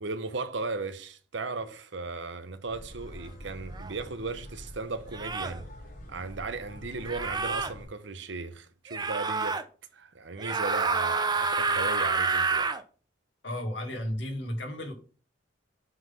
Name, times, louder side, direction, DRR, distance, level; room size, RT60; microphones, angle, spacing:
voice 1, 0.0-5.6 6.1-9.6 9.9-12.7, right 3 dB, 65° right, 0.8 m, -36 dB
sound 1, 2.6-7.9, equal, 45° left, 4.0 m, -45 dB
sound 2, 3.7-3.9 5.1-5.6 7.0-7.7 8.9-9.6 10.4-12.8, right 4 dB, 20° right, 0.5 m, -28 dB
voice 2, 13.4-14.9, left 1 dB, 70° left, 2.1 m, -33 dB
7.6 x 4.0 x 5.6 m
head